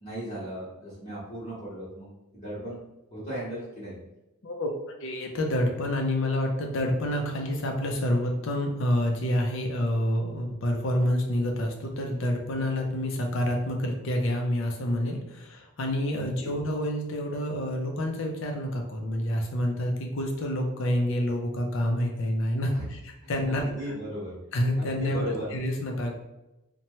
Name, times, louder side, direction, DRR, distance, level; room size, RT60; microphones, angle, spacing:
voice 1, 0.0-2.8 3.1-4.0 16.1-16.5 22.7-22.8 23.2-24.3 24.8-25.5, equal, 30° left, -10 dB, 0.9 m, -37 dB
voice 2, 5.0-23.7 24.5-25.2 25.5-26.1, left 1 dB, 60° left, 2 dB, 0.5 m, -28 dB
2.8 x 2.1 x 3.0 m, 0.96 s
head